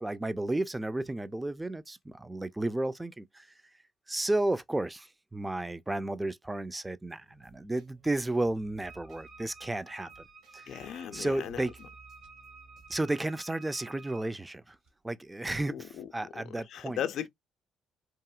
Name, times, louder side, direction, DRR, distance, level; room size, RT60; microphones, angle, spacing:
voice 1, 0.0-3.5 4.1-10.1 10.5-10.8 11.1-11.7 12.9-14.8 15.0-17.0, right 2 dB, 15° right, 0.4 m, -33 dB
sound 1, 7.0-12.9, right 3 dB, 65° right, 1.4 m, -59 dB
Wind instrument woodwind instrument, 8.8-14.3, right 5 dB, 45° right, 0.9 m, -53 dB
sound 2, 9.3-16.0, right 3 dB, 85° right, 1.4 m, -64 dB
voice 2, 10.7-11.6 15.7-16.1 16.3-16.4 16.7-17.3, left 10 dB, 60° left, 0.4 m, -37 dB
2.9 x 2.6 x 2.3 m
hypercardioid pair, 50°, 0 cm